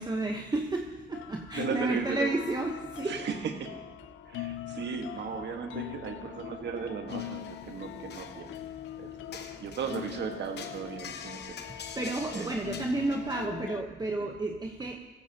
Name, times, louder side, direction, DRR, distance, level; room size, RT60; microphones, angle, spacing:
voice 1, 0.0-3.1 11.7-15.0, right 2 dB, 20° right, 2 dB, 1.0 m, -32 dB
sound 1, 1.1-13.8, left 14 dB, 75° left, 0.5 m, -42 dB
voice 2, 1.5-2.3 3.0-3.8 4.2-8.6 9.0-11.5 12.3-12.5 14.2-14.3, right 6 dB, 60° right, 5 dB, 1.6 m, -36 dB
sound 2, 7.1-13.5, left 6 dB, 60° left, 1.1 m, -46 dB
16.5 x 14.5 x 2.9 m, 1.2 s
cardioid pair, 90°, 20 cm